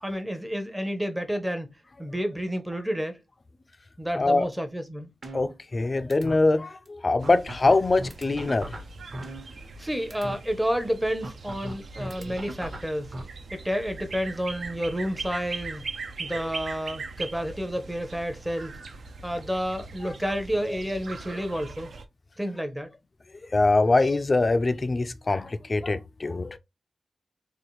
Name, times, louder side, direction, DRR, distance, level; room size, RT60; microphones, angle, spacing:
voice 1, 0.0-1.7 2.0-3.2 4.0-5.1 9.8-13.1 13.5-15.9 16.2-18.8 19.2-21.9 22.4-22.9, equal, 5° right, 0.6 m, -30 dB
voice 2, 4.2-4.5 5.3-8.8 12.2-12.3 20.6-20.7 23.5-26.6, left 3 dB, 30° left, 0.4 m, -23 dB
sound 1, 5.2-5.8 6.1-6.4 6.9-7.0 7.2-9.8 10.1-10.4 11.2-13.2, right 1 dB, 45° right, 0.9 m, -37 dB
sound 2, 7.2-22.0, right 4 dB, 65° right, 0.5 m, -41 dB
3.9 x 2.5 x 3.0 m
wide cardioid pair, 160°, 0 cm